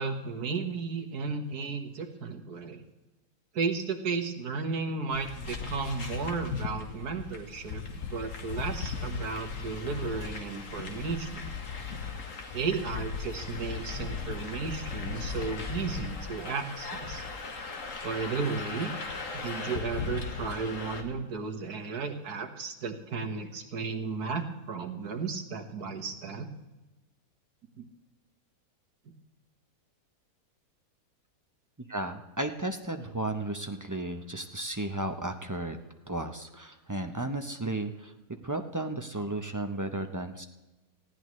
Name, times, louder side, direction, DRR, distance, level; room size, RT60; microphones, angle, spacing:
voice 1, 0.0-2.8 3.5-7.8 8.1-11.5 12.5-17.2 18.0-18.9 19.3-26.5 27.8-27.9, right 4 dB, 75° right, 6 dB, 1.9 m, -34 dB
sound 1, 5.1-21.0, left 5 dB, 55° left, 1.8 m, -37 dB
voice 2, 31.9-35.8 36.1-38.1 38.4-40.4, right 2 dB, 20° right, 6 dB, 0.5 m, -34 dB
19.0 x 15.5 x 3.2 m, 1.1 s
omnidirectional pair, 1.7 m